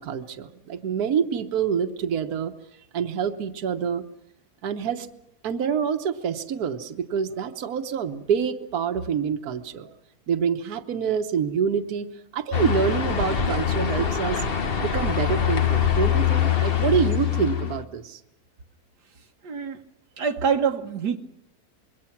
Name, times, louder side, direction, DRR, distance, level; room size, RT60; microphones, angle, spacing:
voice 1, 0.0-2.5 2.9-4.0 4.6-5.1 5.4-9.9 10.3-14.4 14.8-18.2, right 7 dB, 70° right, 7 dB, 1.6 m, -26 dB
sound 1, 12.5-17.8, left 9 dB, 40° left, 1.1 m, -24 dB
voice 2, 19.4-19.8 20.2-21.2, right 6 dB, 90° right, 5 dB, 1.7 m, -25 dB
25.5 x 23.0 x 6.0 m, 0.84 s
omnidirectional pair, 1.7 m